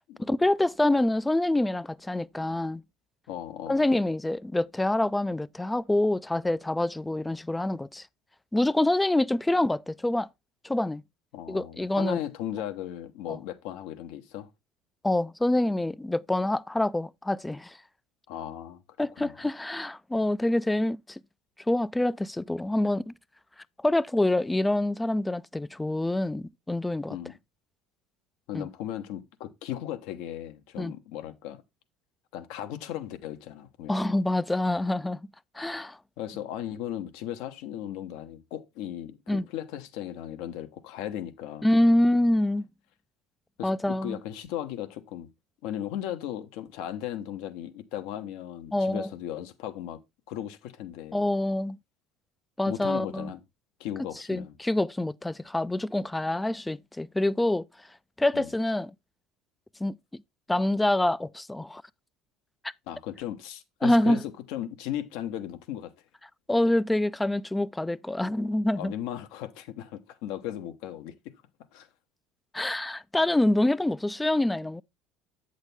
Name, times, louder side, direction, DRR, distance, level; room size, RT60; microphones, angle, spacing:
voice 1, 0.2-2.8 3.7-8.0 8.5-10.3 10.6-11.0 11.5-12.2 13.3-13.4 15.0-17.8 19.0-21.2 21.7-23.1 23.8-27.2 28.5-28.7 30.8-30.9 33.9-35.2 35.6-36.0 39.3-39.5 41.6-42.7 43.6-44.2 48.7-49.1 51.1-51.8 52.6-53.3 54.3-57.7 58.2-58.9 59.8-60.2 60.5-61.8 63.8-64.2 66.5-68.9 72.5-74.8, left 1 dB, 10° left, 0.3 m, -26 dB
voice 2, 3.3-3.8 11.3-14.5 18.3-18.8 19.2-19.3 27.1-27.4 28.5-31.6 32.3-34.2 36.2-41.7 43.6-45.3 45.6-50.0 50.3-51.2 52.7-53.4 53.8-54.5 58.3-58.5 62.9-64.2 64.5-65.9 68.8-71.1 71.7-71.9, left 11 dB, 75° left, 1.0 m, -36 dB
8.1 x 6.5 x 3.4 m
supercardioid pair, 105°, 0 cm